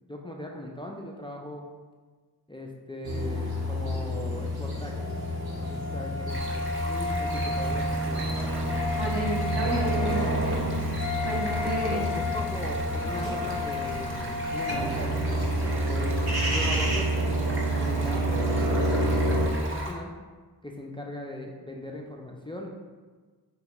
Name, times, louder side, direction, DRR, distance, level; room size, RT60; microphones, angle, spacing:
voice 1, 0.1-1.7 2.5-5.1 5.6-8.2 11.6-17.4 17.7-20.1 20.6-22.7, left 1 dB, 15° left, 0 dB, 0.4 m, -39 dB
sound 1, 3.0-19.5, right 1 dB, 65° right, 1.3 m, -29 dB
Wind instrument woodwind instrument, 4.9-14.9, left 3 dB, 55° left, 0.6 m, -34 dB
Stream, 6.3-19.9, right 1 dB, 30° right, 0.7 m, -40 dB
voice 2, 9.0-10.9 11.2-12.0, right 1 dB, 85° right, -4 dB, 1.2 m, -31 dB
4.1 x 3.4 x 3.0 m, 1.4 s
wide cardioid pair, 75°, 40 cm